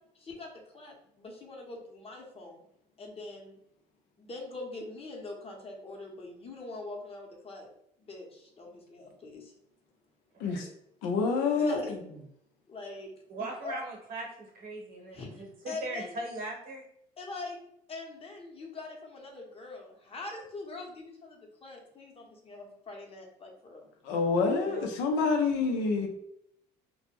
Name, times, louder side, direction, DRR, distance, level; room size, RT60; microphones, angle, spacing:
voice 1, 0.1-2.6 3.0-3.6 4.2-7.7 8.0-9.5 11.6-11.9 12.7-13.1 13.4-13.8 15.1-15.3 15.6-16.1 17.2-17.6 17.9-23.8, left 2 dB, 35° left, 1 dB, 0.8 m, -43 dB
voice 2, 10.3-10.7 13.3-16.8 24.6-24.9, right 2 dB, 55° right, -1 dB, 1.0 m, -40 dB
voice 3, 11.0-11.8 24.0-26.1, left 4 dB, 85° left, 3 dB, 0.6 m, -27 dB
2.2 x 2.1 x 3.1 m, 0.73 s
supercardioid pair, 85°, 18 cm